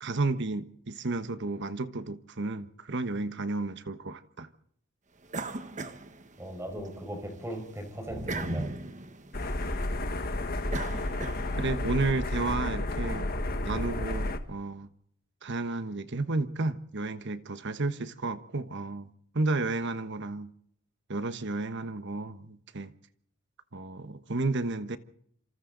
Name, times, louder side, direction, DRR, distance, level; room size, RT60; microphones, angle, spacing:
voice 1, 0.0-4.5 11.6-13.3 13.6-14.9 15.4-19.1 19.3-20.5 21.1-22.9 23.7-25.0, right 3 dB, 60° right, 1.2 m, -32 dB
sound 1, 5.3-6.8 7.2-11.8, right 2 dB, 35° right, 1.3 m, -38 dB
voice 2, 6.4-8.8, equal, 15° right, 5.0 m, -38 dB
sound 2, 9.3-14.4, left 2 dB, 45° left, 1.5 m, -31 dB
27.0 x 26.5 x 4.0 m
head